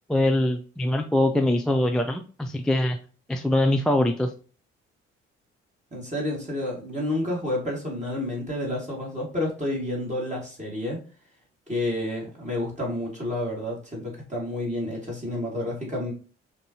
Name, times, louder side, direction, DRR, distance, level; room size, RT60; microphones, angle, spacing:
voice 1, 0.1-3.0 3.3-4.3, left 1 dB, ahead, 4 dB, 0.4 m, -23 dB
voice 2, 5.9-11.0 11.7-16.1, left 1 dB, 20° right, -3 dB, 2.0 m, -30 dB
5.2 x 2.6 x 2.8 m, 0.38 s
figure-of-eight pair, 45°, 35 cm